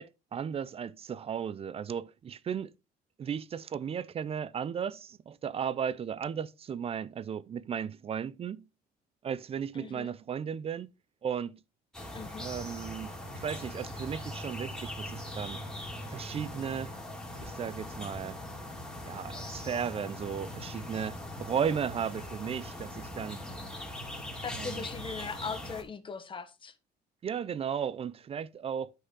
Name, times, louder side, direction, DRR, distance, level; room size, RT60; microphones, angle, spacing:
voice 1, 0.0-2.7 3.2-8.6 9.2-10.9 11.2-11.6 12.4-15.6 16.1-16.9 17.4-18.4 19.0-23.4 24.5-24.9 27.2-28.9, right 7 dB, 35° right, 0.4 m, -35 dB
voice 2, 9.7-10.1 12.1-12.5 24.4-26.7, left 5 dB, 30° left, 1.2 m, -39 dB
sound 1, 11.9-25.8, left 1 dB, 5° left, 2.9 m, -41 dB
9.7 x 5.5 x 3.9 m
cardioid pair, 110°, 17 cm